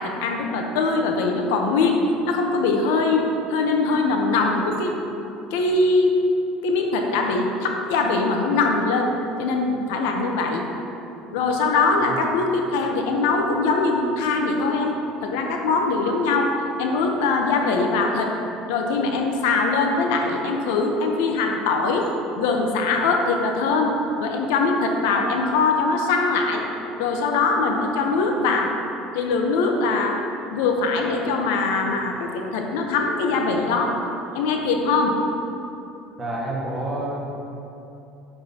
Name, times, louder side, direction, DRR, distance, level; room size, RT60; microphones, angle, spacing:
voice 1, 0.0-2.0 2.3-5.0 5.5-6.2 6.6-9.1 9.4-10.7 11.3-14.9 15.2-16.5 16.8-18.3 18.7-22.1 22.4-26.6 27.0-28.7 29.1-30.2 30.5-34.0 34.3-35.2, left 3 dB, 85° left, 2 dB, 0.9 m, -22 dB
voice 2, 36.2-37.2, right 1 dB, 20° right, -4 dB, 1.6 m, -28 dB
8.9 x 7.8 x 2.9 m, 2.9 s
supercardioid pair, 120°, 0 cm